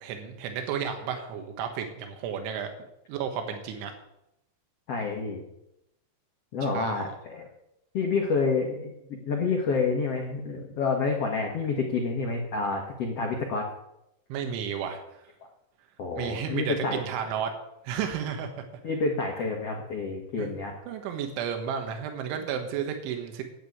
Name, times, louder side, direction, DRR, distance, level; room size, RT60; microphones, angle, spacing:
voice 1, 0.0-2.7 3.1-3.9 6.6-7.1 14.3-15.0 16.2-17.5 17.9-18.6 20.4-23.4, right 7 dB, 85° right, 5 dB, 3.8 m, -32 dB
voice 2, 4.9-5.4 6.5-7.5 7.9-13.7 16.0-17.0 18.8-20.7, left 4 dB, 80° left, 1 dB, 1.3 m, -28 dB
9.2 x 8.5 x 9.2 m, 0.85 s
omnidirectional pair, 5.3 m